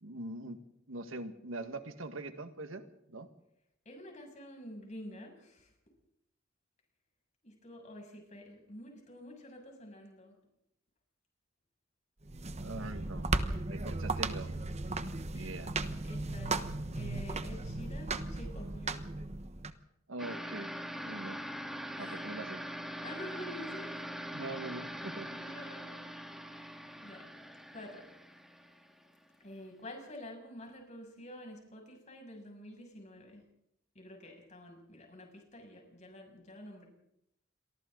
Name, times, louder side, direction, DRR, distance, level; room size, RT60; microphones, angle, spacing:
voice 1, 0.0-3.3 12.6-13.3 13.7-14.5 15.3-15.7 20.1-20.7 21.0-21.4 22.0-22.6 24.3-25.3, right 2 dB, 85° right, 8 dB, 1.8 m, -42 dB
voice 2, 3.9-5.7 7.4-10.3 15.2-15.6 16.0-16.6 16.9-19.0 21.9-22.2 23.0-23.9 25.3-26.0 26.4-27.3 27.7-28.0 29.4-33.4 33.9-36.9, left 1 dB, 35° left, 2 dB, 7.2 m, -48 dB
sound 1, 12.2-19.7, right 3 dB, 35° right, 1.1 m, -36 dB
sound 2, 20.2-29.3, equal, ahead, 2.0 m, -43 dB
28.5 x 23.5 x 4.0 m, 0.81 s
head